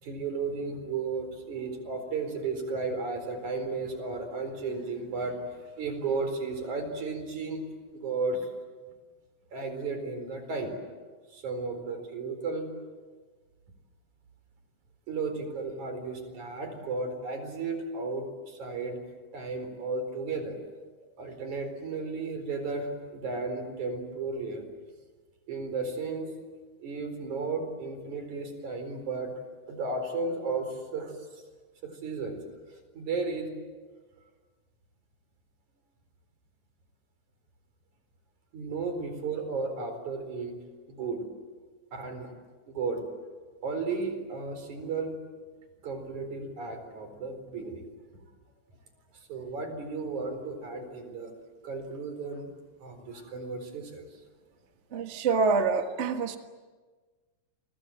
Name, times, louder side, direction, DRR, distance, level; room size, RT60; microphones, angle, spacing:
voice 1, 0.0-7.6 7.9-8.5 9.5-10.8 11.3-12.7 15.1-19.0 19.3-20.6 21.2-24.6 25.5-26.3 26.8-29.3 29.7-31.1 31.8-32.4 32.7-33.5 38.5-40.6 40.9-41.3 41.9-42.3 42.7-43.0 43.6-45.1 45.8-47.9 49.1-51.3 51.6-52.5 52.8-54.0, right 4 dB, 70° right, 7 dB, 5.7 m, -34 dB
voice 2, 54.9-56.4, right 4 dB, 35° right, 6 dB, 1.1 m, -26 dB
30.0 x 24.5 x 7.8 m, 1.4 s
omnidirectional pair, 3.5 m